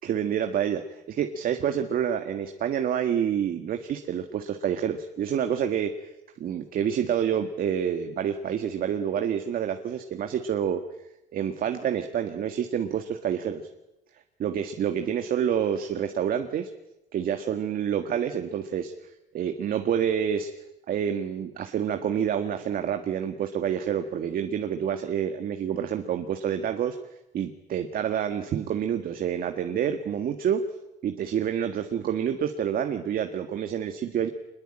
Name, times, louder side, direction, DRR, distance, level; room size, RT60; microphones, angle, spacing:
voice 1, 0.0-5.9 6.4-10.8 11.3-13.6 14.4-16.7 17.1-18.9 19.3-20.5 20.9-27.0 27.3-30.6 31.0-34.3, right 9 dB, 60° right, 6 dB, 1.7 m, -28 dB
25.0 x 21.5 x 8.9 m, 0.93 s
cardioid pair, 110°, 17 cm